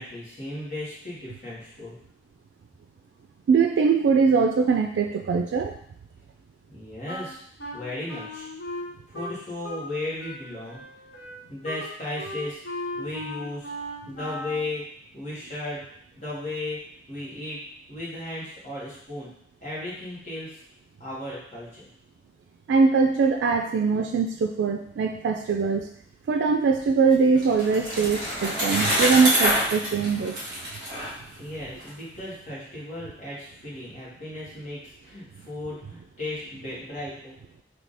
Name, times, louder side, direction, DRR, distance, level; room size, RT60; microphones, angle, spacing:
voice 1, 0.0-2.0 6.7-7.4 7.7-8.5 9.1-10.8 11.5-12.6 13.0-13.7 14.0-14.8 15.1-15.8 16.1-16.8 17.1-17.6 17.9-19.3 19.6-20.6 21.0-21.8 31.4-37.3, left 2 dB, 40° left, -7 dB, 1.5 m, -35 dB
voice 2, 3.5-5.8 22.7-25.9 26.3-30.4, right 5 dB, 90° right, 4 dB, 0.3 m, -22 dB
Wind instrument woodwind instrument, 7.1-9.9 10.2-14.7, left 1 dB, 75° left, 1.0 m, -37 dB
Bicycle, 26.8-31.9, equal, 25° right, 1.6 m, -26 dB
3.4 x 2.8 x 4.0 m, 0.66 s
head